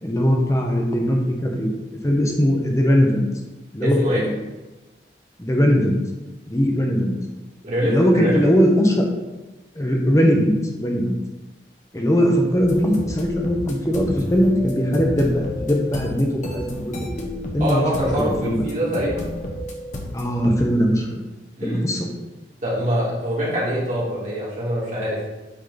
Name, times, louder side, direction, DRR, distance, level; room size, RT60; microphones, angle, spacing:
voice 1, 0.0-1.7 2.0-3.2 3.7-4.4 5.4-6.0 6.5-7.1 7.8-9.0 9.7-11.1 11.9-17.3 17.5-18.6 20.1-21.2 21.6-22.1, equal, 15° left, 0 dB, 1.0 m, -20 dB
voice 2, 3.8-4.2 7.6-8.5 17.6-19.3 21.6-21.9 22.6-25.3, equal, 45° right, -6 dB, 2.5 m, -24 dB
sound 1, 12.6-20.6, left 1 dB, 45° left, 1.0 m, -32 dB
8.4 x 4.2 x 4.0 m, 1.1 s
head